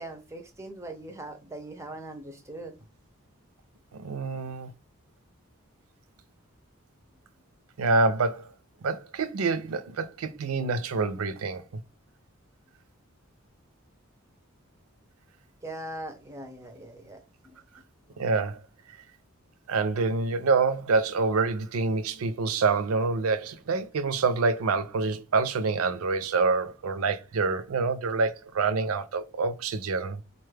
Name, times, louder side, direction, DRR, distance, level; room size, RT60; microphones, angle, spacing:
voice 1, 0.0-2.7 15.6-17.6, right 1 dB, 15° right, 0.4 m, -41 dB
voice 2, 3.9-4.7 7.8-8.5 8.8-11.8 18.2-18.6 19.7-30.2, right 4 dB, 85° right, 0.4 m, -26 dB
4.0 x 2.2 x 3.2 m
head